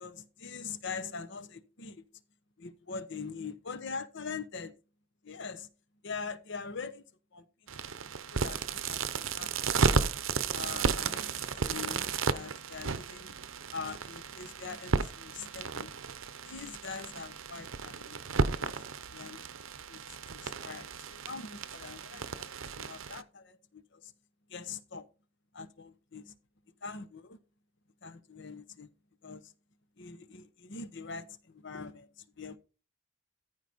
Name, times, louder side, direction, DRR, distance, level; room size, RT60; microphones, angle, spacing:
voice 1, 0.0-2.0 2.6-4.7 5.2-5.7 6.0-7.0 7.3-7.4 8.1-10.1 10.5-13.4 13.7-15.9 16.4-18.8 19.1-19.5 19.9-24.1 24.5-25.1 25.5-26.3 26.8-27.4 28.0-28.9 29.2-29.5 30.0-32.6, left 5 dB, 65° left, 1.0 m, -43 dB
sound 1, 7.7-23.2, right 5 dB, 80° right, 0.7 m, -34 dB
14.0 x 4.8 x 4.0 m
head